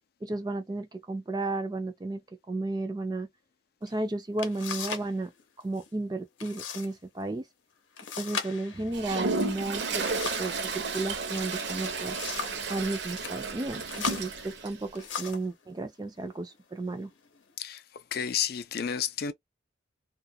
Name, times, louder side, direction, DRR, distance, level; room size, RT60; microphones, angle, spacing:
voice 1, 0.2-2.2 2.5-3.3 3.8-5.3 5.6-7.4 8.2-10.1 10.4-12.2 12.7-17.1, right 2 dB, 20° right, 0.3 m, -33 dB
Subway station card swipe, 3.9-4.0 4.4-5.1 5.4-5.9 6.4-6.9 7.2-7.3 8.0-10.6 11.6-12.7 13.1-13.4 13.9-15.5 16.3-16.5 17.0-17.5, left 6 dB, 75° left, 0.7 m, -38 dB
Toilet flush, 8.9-14.7, right 4 dB, 60° right, 0.6 m, -32 dB
voice 2, 17.6-19.3, left 8 dB, 50° left, 0.3 m, -31 dB
2.3 x 2.2 x 2.6 m
head